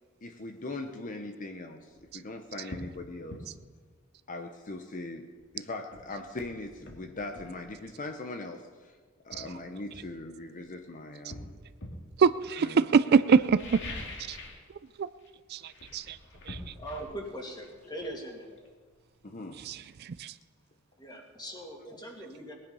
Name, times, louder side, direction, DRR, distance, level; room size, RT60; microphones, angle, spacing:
voice 1, 0.2-3.5 4.3-8.9 9.2-11.6 12.6-12.9 13.3-13.4 19.2-19.6, left 2 dB, 40° left, 5 dB, 0.9 m, -40 dB
sound 1, 1.9-2.1 2.7-2.9 3.3-3.5 5.4-5.5 5.9-7.6 8.6-8.8 9.3-10.7 11.3-12.1 13.4-14.7 14.9-15.3 15.6-19.2 19.5-19.6, left 2 dB, 60° left, 2.2 m, -45 dB
voice 2, 12.2-13.8 14.3-14.4 15.0-15.1 15.5-15.6 15.9-16.2 16.5-16.6 19.7-19.8 20.2-20.3, right 5 dB, 50° right, 15 dB, 0.4 m, -23 dB
voice 3, 16.7-18.5 21.0-22.5, right 1 dB, 20° left, 1 dB, 2.4 m, -41 dB
19.0 x 10.0 x 5.5 m, 1.5 s
head